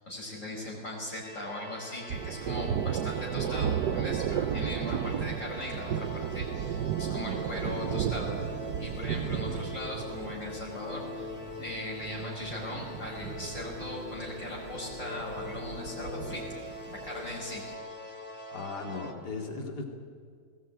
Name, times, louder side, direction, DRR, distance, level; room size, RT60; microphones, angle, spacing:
voice 1, 0.0-8.4 8.8-11.3 11.6-16.6 16.9-17.7, left 1 dB, 50° left, -3 dB, 5.7 m, -39 dB
sound 1, 1.2-19.1, left 2 dB, 5° left, 2.2 m, -43 dB
Thunder, 2.1-17.6, right 9 dB, 80° right, 1.4 m, -34 dB
voice 2, 18.5-19.8, left 3 dB, 80° left, 2 dB, 3.2 m, -37 dB
20.0 x 18.5 x 9.0 m, 2.1 s
omnidirectional pair, 1.8 m